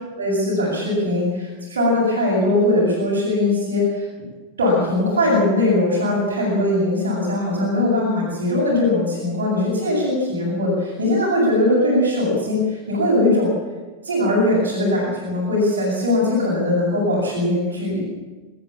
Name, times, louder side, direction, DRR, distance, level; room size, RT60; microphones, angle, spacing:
voice 1, 0.2-4.0 4.6-13.5 14.0-18.0, left 1 dB, 65° right, -5 dB, 7.6 m, -20 dB
26.0 x 13.5 x 7.5 m, 1.3 s
figure-of-eight pair, 90°, 0 cm